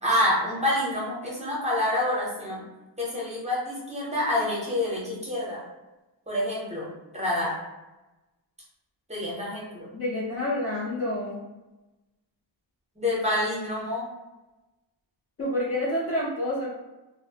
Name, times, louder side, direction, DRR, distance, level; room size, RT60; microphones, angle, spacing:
voice 1, 0.0-2.6 3.0-5.6 6.3-6.9 7.1-7.6 9.1-9.9 13.0-14.1, left 1 dB, 15° right, -6 dB, 0.7 m, -27 dB
voice 2, 9.9-11.4 15.4-16.7, left 1 dB, 35° left, -6 dB, 0.5 m, -28 dB
2.6 x 2.0 x 2.7 m, 1.0 s
wide cardioid pair, 170°, 45 cm